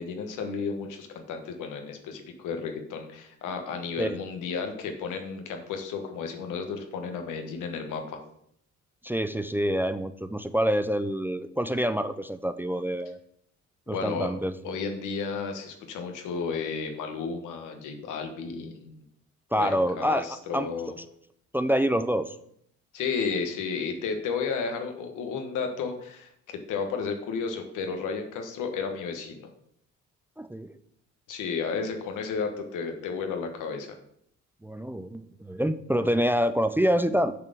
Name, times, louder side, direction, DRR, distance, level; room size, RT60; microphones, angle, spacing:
voice 1, 0.0-8.2 13.9-14.3 14.6-19.0 19.6-20.9 22.9-29.5 31.3-34.0, left 5 dB, 90° left, 5 dB, 1.3 m, -33 dB
voice 2, 9.0-13.2 13.9-14.8 19.5-20.3 20.5-20.7 21.5-22.4 30.4-30.8 34.6-37.3, equal, 5° right, 11 dB, 0.4 m, -26 dB
7.4 x 4.1 x 6.6 m, 0.70 s
cardioid pair, 90°, 30 cm